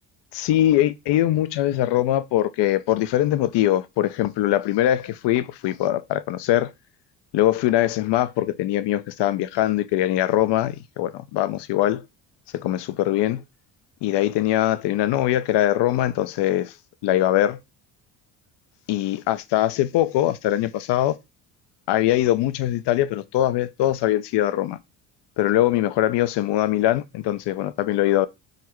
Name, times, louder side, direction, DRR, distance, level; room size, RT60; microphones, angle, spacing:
voice 1, 0.3-6.7 7.3-12.1 12.5-13.4 14.0-16.7 17.0-17.6 18.9-21.2 21.9-24.8 25.4-28.3, left 13 dB, 60° left, 0.5 m, -22 dB
3.9 x 2.1 x 3.0 m
supercardioid pair, 60°, 49 cm